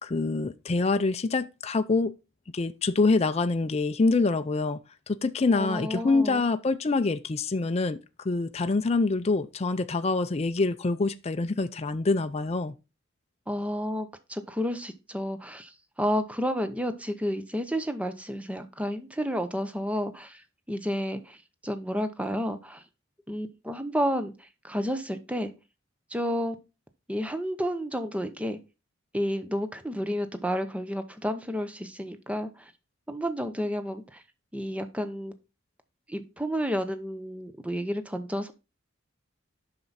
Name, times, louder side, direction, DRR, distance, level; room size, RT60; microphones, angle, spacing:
voice 1, 0.0-2.1 2.5-4.8 5.1-12.8, left 3 dB, 30° left, 0.4 m, -26 dB
voice 2, 5.5-6.5 13.5-15.7 16.0-20.4 20.7-21.4 21.6-22.8 23.3-24.3 24.6-25.5 26.1-26.6 27.1-28.6 29.1-32.7 33.1-34.2 34.5-35.3 36.1-38.5, equal, 5° right, 0.7 m, -31 dB
7.6 x 5.9 x 4.0 m
head